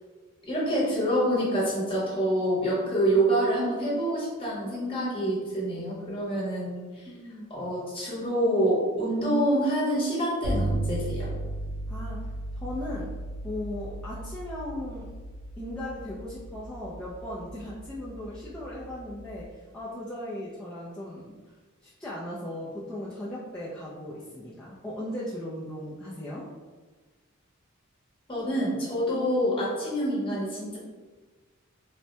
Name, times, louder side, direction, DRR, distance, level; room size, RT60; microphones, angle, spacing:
voice 1, 0.5-7.1 7.5-11.3 28.3-30.8, right 1 dB, 25° left, -6 dB, 1.1 m, -26 dB
voice 2, 7.1-7.6 11.9-13.1 13.4-15.1 15.6-21.3 21.8-26.5, left 1 dB, 5° left, -9 dB, 0.4 m, -37 dB
sound 1, 10.4-19.4, right 1 dB, 85° right, 1.4 m, -35 dB
4.1 x 2.2 x 2.7 m, 1.4 s
head